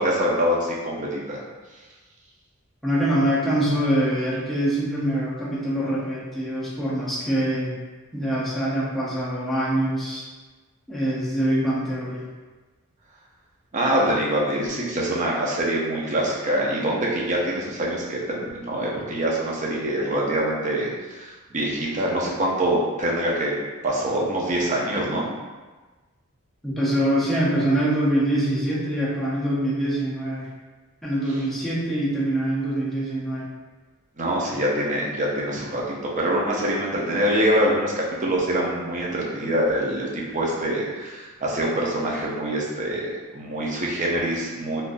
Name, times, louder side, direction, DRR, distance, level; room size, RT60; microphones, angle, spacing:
voice 1, 0.0-1.4 13.7-23.5 23.8-25.3 31.3-31.4 34.2-44.8, right 1 dB, 35° right, -3 dB, 0.6 m, -25 dB
voice 2, 2.8-7.7 8.1-10.2 10.9-12.2 26.6-30.5 31.0-33.5, right 1 dB, ahead, -8 dB, 0.7 m, -24 dB
3.8 x 2.5 x 2.5 m, 1.3 s
head